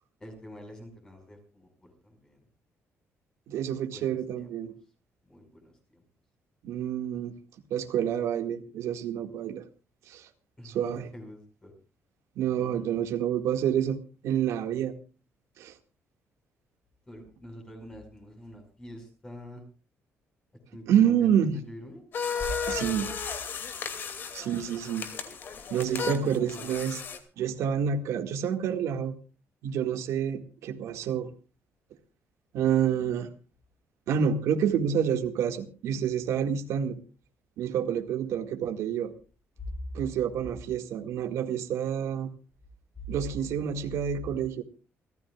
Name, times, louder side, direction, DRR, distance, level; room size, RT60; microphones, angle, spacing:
voice 1, 0.2-2.4 3.9-4.5 5.3-6.0 10.6-11.7 12.5-13.0 17.1-19.6 20.7-22.0 22.4-22.5 26.0-26.7 39.6-39.7 43.0-43.1, left 1 dB, 15° left, 4 dB, 5.4 m, -45 dB
voice 2, 3.5-4.7 6.6-7.4 7.7-9.6 10.1-10.3 10.6-11.1 12.4-14.9 15.6-15.7 20.9-21.6 22.7-23.1 24.3-25.1 25.7-27.0 27.4-29.1 29.6-31.3 32.5-33.3 34.1-37.0 37.6-39.1 39.9-42.3 43.1-44.6, right 8 dB, 75° right, 5 dB, 2.0 m, -28 dB
sound 1, 22.1-27.2, left 6 dB, 45° left, 2.6 m, -34 dB
29.0 x 14.5 x 2.4 m, 0.34 s
cardioid pair, 170°, 5 cm